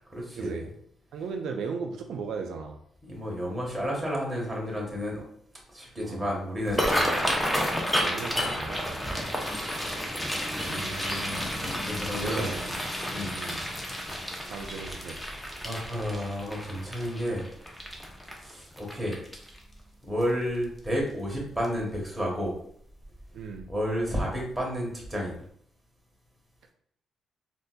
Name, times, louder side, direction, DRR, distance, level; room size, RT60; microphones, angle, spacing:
voice 1, 0.1-0.7 3.1-5.2 5.7-7.5 11.8-12.5 13.1-13.3 14.2-14.5 15.6-17.5 18.4-19.2 20.1-22.6 23.7-25.4, equal, 10° right, -3 dB, 1.2 m, -31 dB
voice 2, 1.1-2.8 6.0-6.3 8.0-9.0 10.7-11.4 12.1-12.8 13.4-13.7 14.5-15.2 23.3-23.7, right 5 dB, 80° right, 3 dB, 0.3 m, -36 dB
sound 1, 6.6-19.7 20.2-20.5 20.8-21.2 21.6-21.8 23.0-23.2 23.6-23.7 24.2-24.3, equal, 5° left, 0.6 m, -31 dB
3.7 x 2.5 x 2.2 m, 0.64 s
cardioid pair, 90°, 0 cm